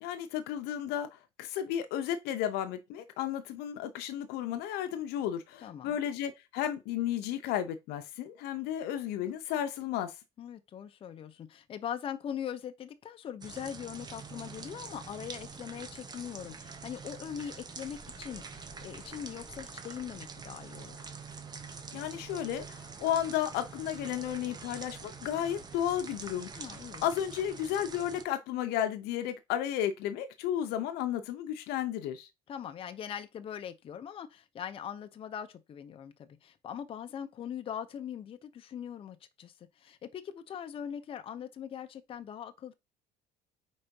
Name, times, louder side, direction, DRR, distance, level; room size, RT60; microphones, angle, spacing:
voice 1, 0.0-10.1 21.9-26.6 27.0-32.3, left 10 dB, 75° left, 0.7 m, -33 dB
voice 2, 5.6-6.0 10.4-21.0 26.6-27.1 32.5-42.7, left 9 dB, 35° left, 0.7 m, -41 dB
sound 1, 13.4-28.2, right 5 dB, 25° right, 1.0 m, -45 dB
4.5 x 4.1 x 5.2 m
cardioid pair, 140°, 17 cm